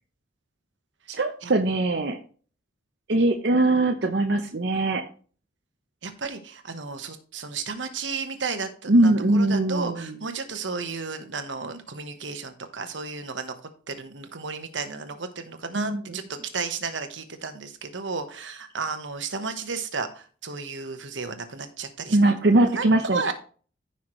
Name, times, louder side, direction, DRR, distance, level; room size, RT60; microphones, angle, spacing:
voice 1, 1.1-2.2 3.1-5.0 8.9-10.0 15.7-16.2 22.1-23.2, right 2 dB, 65° right, 3 dB, 0.8 m, -21 dB
voice 2, 6.0-13.6 13.9-22.2 22.7-22.8 23.1-23.3, right 4 dB, 80° right, 8 dB, 1.2 m, -33 dB
14.5 x 5.8 x 3.2 m, 0.41 s
head